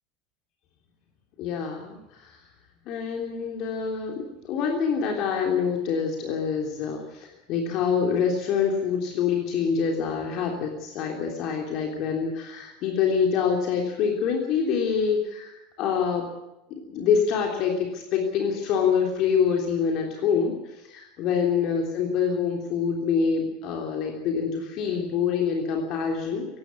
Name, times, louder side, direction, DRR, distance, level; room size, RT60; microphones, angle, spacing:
voice 1, 1.4-2.4 2.8-16.3 16.7-26.5, left 6 dB, 45° left, 1 dB, 3.3 m, -26 dB
17.5 x 16.5 x 9.6 m, 0.93 s
figure-of-eight pair, 75°, 0 cm